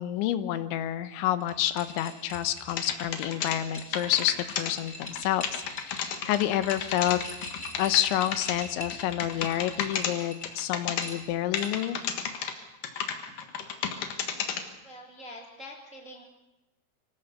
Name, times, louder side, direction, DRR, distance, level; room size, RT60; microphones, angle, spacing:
voice 1, 0.0-7.2 7.8-12.0, left 13 dB, 80° left, 11 dB, 3.2 m, -29 dB
sound 1, 1.4-10.5 11.0-12.0, left 2 dB, 15° left, 2.2 m, -43 dB
sound 2, 2.7-3.6 3.9-4.7 5.0-5.2 5.4-8.6 8.9-10.1 10.4-11.0 11.5-12.5 12.8-14.6, left 8 dB, 60° left, 2.5 m, -32 dB
voice 2, 14.8-16.2, left 1 dB, 40° right, 0 dB, 1.0 m, -45 dB
25.0 x 16.5 x 6.8 m, 1.0 s
omnidirectional pair, 5.6 m